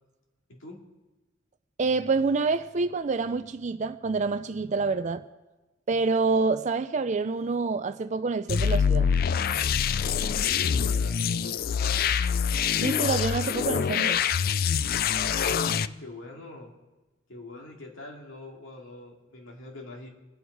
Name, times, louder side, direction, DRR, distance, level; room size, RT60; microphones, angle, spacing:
voice 1, 1.8-5.2 5.9-9.1 12.8-14.2, right 4 dB, 35° right, 0.4 m, -27 dB
sound 1, 8.5-15.9, left 7 dB, 45° left, 0.3 m, -25 dB
voice 2, 10.2-11.2 11.6-12.1 15.3-16.7 17.3-20.1, left 2 dB, 75° left, 2.5 m, -44 dB
23.5 x 9.4 x 4.7 m
head